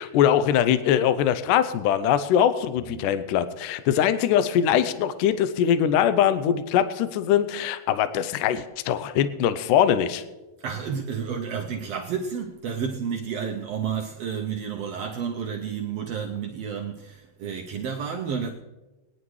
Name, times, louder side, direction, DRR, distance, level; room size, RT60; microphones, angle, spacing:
voice 1, 0.0-10.2, left 9 dB, 80° left, 2.1 m, -22 dB
voice 2, 10.6-18.5, right 7 dB, 85° right, 1.4 m, -31 dB
22.5 x 10.0 x 3.2 m
omnidirectional pair, 3.9 m